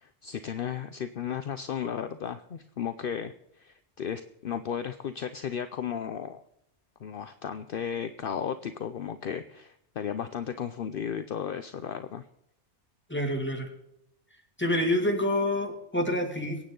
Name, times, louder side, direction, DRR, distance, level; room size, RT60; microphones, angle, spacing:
voice 1, 0.0-6.4 7.0-12.2, left 8 dB, 60° left, 10 dB, 0.8 m, -34 dB
voice 2, 13.1-13.7 14.6-16.6, left 1 dB, 10° left, 2 dB, 2.3 m, -27 dB
23.5 x 9.1 x 3.8 m, 0.79 s
omnidirectional pair, 1.1 m